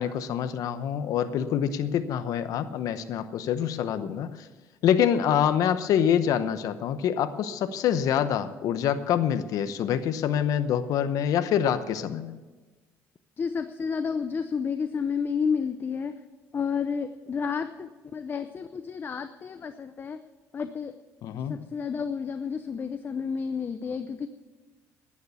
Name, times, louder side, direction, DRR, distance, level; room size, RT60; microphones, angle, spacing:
voice 1, 0.0-4.5 4.8-12.3 21.2-21.6, left 9 dB, 70° left, 11 dB, 0.8 m, -26 dB
voice 2, 13.4-16.2 16.5-20.2 20.5-20.9 21.5-24.3, left 6 dB, 35° left, 10 dB, 0.6 m, -31 dB
11.0 x 9.5 x 8.3 m, 1.2 s
cardioid pair, 105°, 6 cm